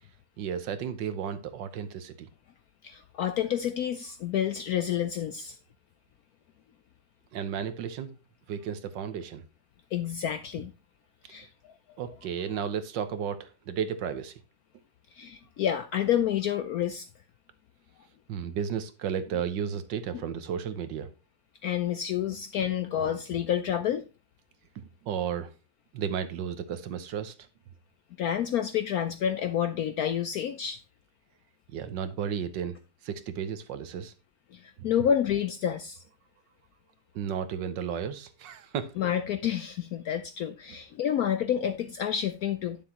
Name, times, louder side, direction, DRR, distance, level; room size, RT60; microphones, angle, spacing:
voice 1, 0.4-2.3 7.3-8.1 8.5-9.4 12.0-14.3 18.3-21.1 23.0-23.1 24.7-25.5 25.9-27.3 31.7-32.8 33.0-34.1 34.8-34.9 37.1-38.9, right 8 dB, 70° right, 1.5 m, -33 dB
voice 2, 2.8-5.6 9.9-10.7 11.3-11.7 15.1-17.1 20.1-20.2 21.6-24.0 28.2-30.8 34.5-36.0 39.0-42.8, left 9 dB, 75° left, 0.8 m, -29 dB
9.7 x 7.0 x 2.9 m
omnidirectional pair, 2.1 m